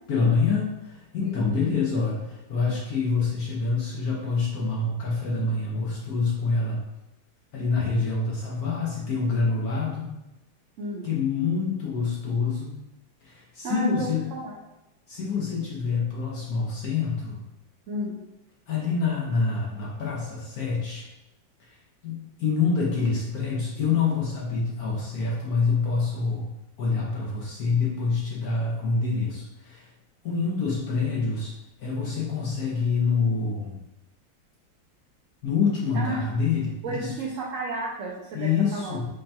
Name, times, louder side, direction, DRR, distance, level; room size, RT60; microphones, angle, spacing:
voice 1, 0.1-6.8 7.5-10.1 11.0-12.8 13.2-14.3 15.1-17.4 18.7-21.0 22.0-26.4 26.8-29.8 30.2-31.5 31.8-33.8 35.4-37.1 38.3-39.0, left 4 dB, 60° left, -4 dB, 1.1 m, -26 dB
voice 2, 10.8-11.1 13.6-14.5 17.9-18.1 35.9-36.2 36.8-39.0, right 1 dB, 75° right, -3 dB, 0.7 m, -32 dB
5.2 x 2.3 x 2.8 m, 0.95 s
omnidirectional pair, 2.1 m